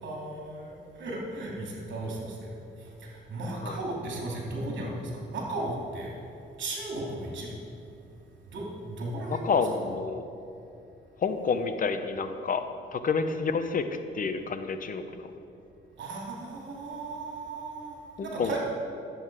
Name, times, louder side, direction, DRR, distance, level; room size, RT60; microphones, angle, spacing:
voice 1, 0.0-2.5 2.8-6.2 6.6-7.5 8.5-9.6 16.0-18.6, right 2 dB, 65° right, -2 dB, 2.8 m, -36 dB
voice 2, 9.3-10.2 11.2-12.6 12.9-13.8 14.1-15.0 18.2-18.6, left 5 dB, 45° left, 9 dB, 0.8 m, -28 dB
10.5 x 8.1 x 4.8 m, 2.6 s
cardioid pair, 90°, 20 cm